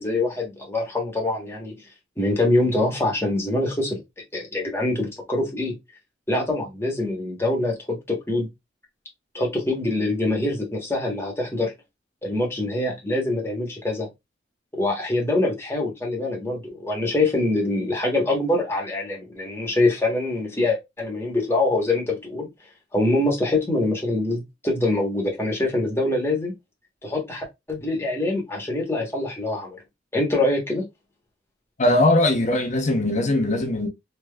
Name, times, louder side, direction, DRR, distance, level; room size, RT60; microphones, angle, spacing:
voice 1, 0.0-1.8 2.2-4.0 4.3-5.7 6.3-8.5 9.3-11.7 12.2-14.1 14.7-22.5 22.9-26.5 27.0-29.8 30.1-30.8, left 2 dB, 15° left, 1.0 m, -24 dB
voice 2, 31.8-33.9, left 1 dB, 40° left, 0.7 m, -20 dB
3.3 x 2.8 x 2.2 m
head